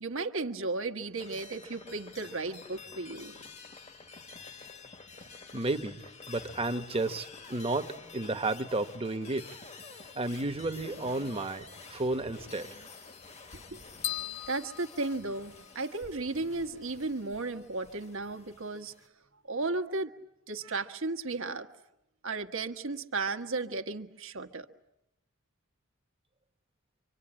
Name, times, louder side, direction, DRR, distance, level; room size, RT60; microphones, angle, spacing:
voice 1, 0.0-3.3 13.7-13.8 14.5-18.9 19.5-20.1 20.5-21.7 22.2-24.7, right 3 dB, 65° right, 6 dB, 1.5 m, -34 dB
sound 1, 1.2-19.1, left 4 dB, 30° left, 1.3 m, -49 dB
voice 2, 5.5-9.5 10.1-12.8, right 2 dB, 25° right, 8 dB, 1.2 m, -32 dB
sound 2, 14.0-16.0, left 12 dB, 85° left, 1.3 m, -38 dB
26.5 x 25.5 x 8.9 m, 0.86 s
head